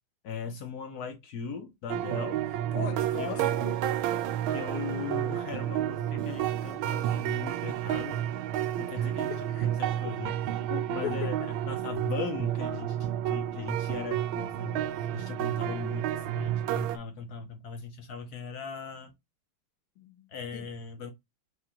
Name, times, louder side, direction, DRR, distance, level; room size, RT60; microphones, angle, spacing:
voice 1, 0.2-2.4 3.2-3.5 4.5-8.2 8.8-10.3 10.9-11.4 11.6-14.8 15.1-19.1 20.3-21.1, left 6 dB, 65° left, 1.0 m, -39 dB
sound 1, 1.9-17.0, right 11 dB, 80° right, 1.4 m, -30 dB
voice 2, 2.7-3.9 9.0-9.7 10.0-10.2 10.6-11.5 20.0-20.7, left 9 dB, 80° left, 1.6 m, -39 dB
4.9 x 3.4 x 2.8 m
omnidirectional pair, 2.3 m